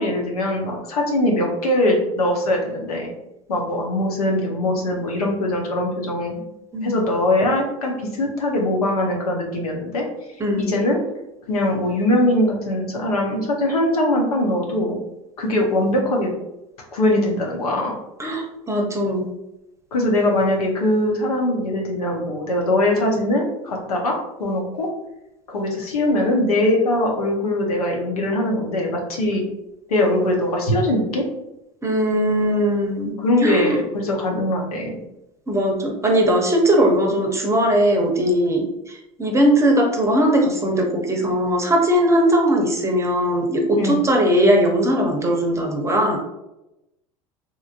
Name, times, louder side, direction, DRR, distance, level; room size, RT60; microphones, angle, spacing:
voice 1, 0.0-3.1 3.5-6.4 6.8-10.0 10.6-11.0 11.5-15.0 15.4-16.3 16.9-17.9 19.9-24.9 25.5-29.4 29.9-31.2 33.2-34.9 43.8-44.0, left 1 dB, 85° left, 0 dB, 0.8 m, -21 dB
voice 2, 18.2-19.3 31.8-33.1 33.4-33.8 35.5-46.2, equal, 15° right, 1 dB, 0.7 m, -19 dB
3.0 x 2.5 x 2.4 m, 0.90 s
hypercardioid pair, 80°, 18 cm